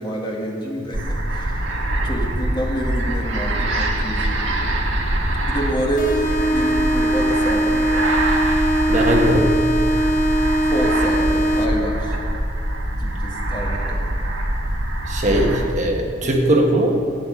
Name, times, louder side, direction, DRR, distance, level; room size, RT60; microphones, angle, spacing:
voice 1, 0.0-1.7 2.0-4.5 5.5-6.2 6.5-8.0 10.7-12.1 13.0-14.2 15.3-15.5 16.4-16.5, right 1 dB, 25° left, -1 dB, 1.7 m, -28 dB
sound 1, 0.9-15.7, right 1 dB, 80° right, 1.5 m, -24 dB
sound 2, 6.0-12.0, right 1 dB, 45° left, 1.2 m, -20 dB
voice 2, 8.9-9.5 15.1-17.0, right 1 dB, 40° right, 1 dB, 1.5 m, -19 dB
14.0 x 9.3 x 6.5 m, 2.4 s
head